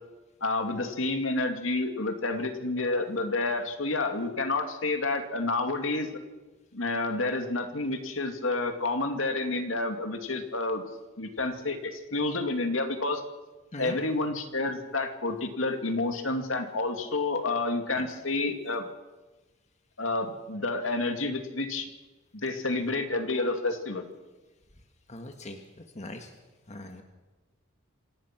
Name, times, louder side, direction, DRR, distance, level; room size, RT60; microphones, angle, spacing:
voice 1, 0.4-6.1 6.7-10.8 11.2-13.2 13.8-18.9 20.0-21.9 22.3-24.1, left 2 dB, 65° left, 6 dB, 2.5 m, -29 dB
voice 2, 25.1-25.6 26.0-26.3 26.7-27.0, left 1 dB, 35° left, 5 dB, 1.7 m, -40 dB
26.5 x 17.5 x 6.1 m, 1.2 s
head